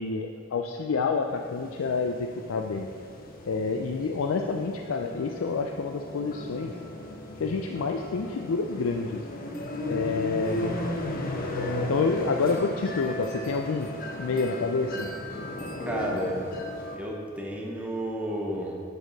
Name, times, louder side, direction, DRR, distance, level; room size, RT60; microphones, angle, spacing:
voice 1, 0.0-2.9 3.5-6.7 7.4-9.2 9.9-10.7 11.9-13.9 14.2-15.1, left 4 dB, 80° left, 3 dB, 0.4 m, -28 dB
sound 1, 1.3-17.0, left 1 dB, 45° left, 0.8 m, -35 dB
voice 2, 15.8-16.4 16.9-18.8, equal, 5° right, -2 dB, 0.9 m, -32 dB
7.9 x 6.4 x 4.0 m, 2.1 s
head